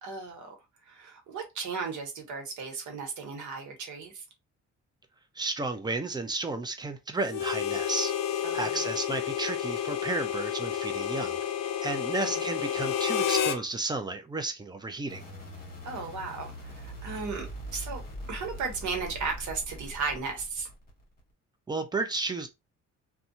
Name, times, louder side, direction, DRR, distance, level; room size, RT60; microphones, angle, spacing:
voice 1, 0.0-0.5 0.8-4.2 8.4-8.8 12.2-12.5 15.8-18.0 18.3-20.7, right 4 dB, 75° right, 1.2 m, -35 dB
voice 2, 5.4-8.1 8.4-15.3 21.7-22.5, right 3 dB, 15° right, 0.6 m, -33 dB
Harmonica, 7.3-13.6, left 9 dB, 60° left, 0.5 m, -30 dB
sound 1, 15.1-21.2, equal, 30° left, 1.4 m, -42 dB
2.7 x 2.4 x 2.5 m
cardioid pair, 90°, 30 cm